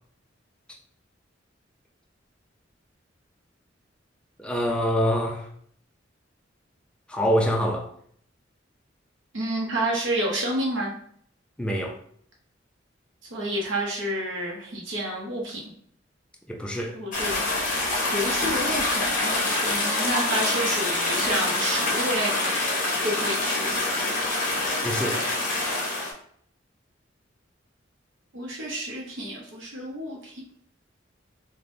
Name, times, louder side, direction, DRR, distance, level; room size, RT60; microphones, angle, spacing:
voice 1, 4.4-5.4 7.1-7.9 11.6-11.9 16.5-17.0 24.8-25.2, equal, 5° left, 0.4 m, -25 dB
voice 2, 9.3-10.9 13.3-15.6 16.9-17.4 18.1-22.5 23.0-23.7 28.3-30.4, right 1 dB, 75° right, 0.7 m, -29 dB
sound 1, 17.1-26.1, left 2 dB, 45° left, 0.7 m, -26 dB
3.3 x 2.1 x 2.5 m
head